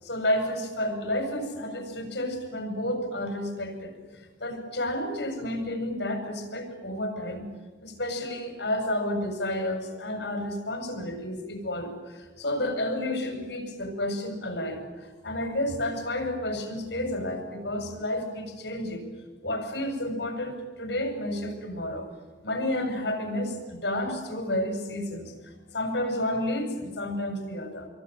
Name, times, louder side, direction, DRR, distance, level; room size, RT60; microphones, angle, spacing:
voice 1, 0.0-3.9 4.4-7.5 7.8-19.1 19.4-22.1 22.4-27.9, left 1 dB, 70° left, 5 dB, 6.8 m, -31 dB
26.0 x 23.0 x 9.3 m, 1.4 s
head